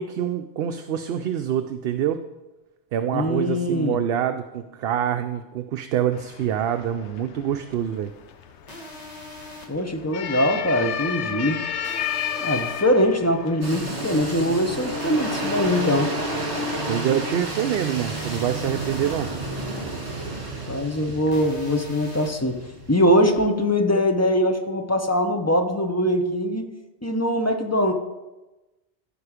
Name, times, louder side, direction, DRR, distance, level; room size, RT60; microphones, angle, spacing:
voice 1, 0.0-2.2 2.9-8.1 16.9-19.3, right 10 dB, 65° right, 7 dB, 0.7 m, -26 dB
voice 2, 3.1-4.0 9.7-11.6 12.4-16.1 20.7-22.6 22.9-26.7 27.0-27.9, equal, 15° left, 5 dB, 0.8 m, -22 dB
sound 1, 6.1-17.4, left 9 dB, 80° left, 1.0 m, -34 dB
sound 2, 8.7-9.7 11.8-12.8 15.0-16.0 18.2-19.1 21.3-22.3, left 1 dB, 35° left, 1.6 m, -41 dB
sound 3, 13.6-23.5, right 1 dB, 35° right, 2.1 m, -31 dB
14.5 x 5.5 x 5.0 m, 1.1 s
omnidirectional pair, 1.2 m